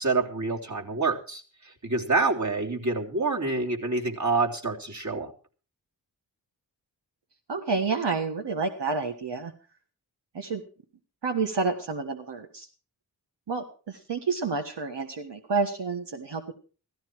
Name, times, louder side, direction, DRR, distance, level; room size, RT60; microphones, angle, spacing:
voice 1, 0.0-5.3, right 3 dB, 45° right, 0 dB, 3.4 m, -27 dB
voice 2, 7.5-9.5 10.3-10.6 11.2-12.7 13.5-16.5, right 4 dB, 80° right, 4 dB, 1.6 m, -29 dB
15.5 x 13.5 x 4.7 m, 0.38 s
cardioid pair, 55°, 41 cm